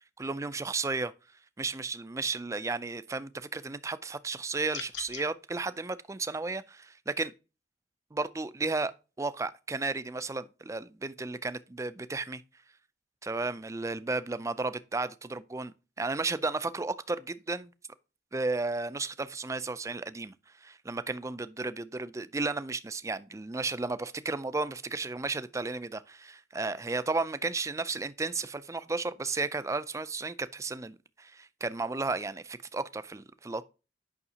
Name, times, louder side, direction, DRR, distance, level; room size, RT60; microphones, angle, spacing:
voice 1, 0.2-1.1 1.6-7.3 8.1-12.4 13.2-17.7 18.3-20.3 20.6-33.6, right 3 dB, 15° right, 0.4 m, -33 dB
sound 1, 4.7-5.3, left 8 dB, 85° left, 1.1 m, -40 dB
9.6 x 5.8 x 2.8 m
head